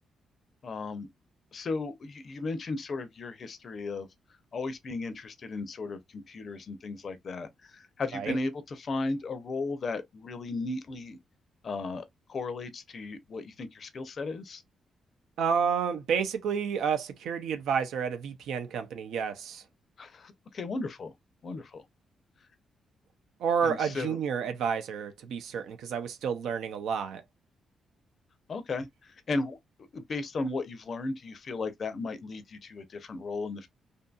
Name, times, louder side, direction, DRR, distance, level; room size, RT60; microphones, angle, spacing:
voice 1, 0.6-1.1 1.5-4.1 4.5-11.2 11.6-14.6 20.0-21.1 21.4-21.8 23.6-24.2 28.5-33.7, left 3 dB, 40° left, 0.5 m, -35 dB
voice 2, 15.4-19.6 23.4-27.2, right 7 dB, 85° right, 0.5 m, -30 dB
2.7 x 2.6 x 2.2 m
cardioid pair, 130°, 0 cm